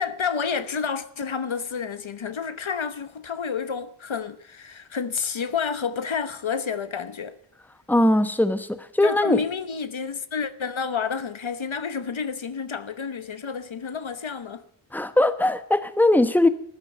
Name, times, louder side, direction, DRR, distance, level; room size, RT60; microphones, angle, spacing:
voice 1, 0.0-7.4 9.0-14.6, left 6 dB, 80° left, 1.0 m, -30 dB
voice 2, 7.9-9.4 14.9-16.5, left 1 dB, 5° left, 1.0 m, -20 dB
14.0 x 10.5 x 7.7 m
wide cardioid pair, 55°, 46 cm